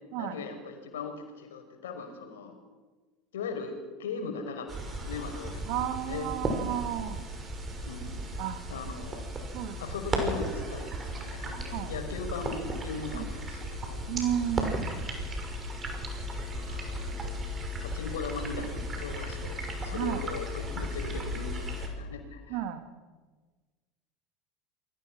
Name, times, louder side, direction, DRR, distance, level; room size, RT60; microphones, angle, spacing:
voice 1, 0.1-2.6 3.3-3.7 4.0-6.3 7.9-8.2 8.7-9.3 9.8-14.0 16.7-17.3 17.8-22.6, left 4 dB, 70° left, 5 dB, 5.5 m, -39 dB
sound 1, 4.7-21.9, right 1 dB, 25° right, 5.9 m, -35 dB
voice 2, 5.7-7.2 8.4-8.6 9.5-9.8 11.7-11.9 13.1-13.3 14.1-15.1 19.9-20.2 22.5-22.8, right 10 dB, 55° right, 7 dB, 2.8 m, -32 dB
28.0 x 22.5 x 6.3 m, 1.3 s
figure-of-eight pair, 70°, 0 cm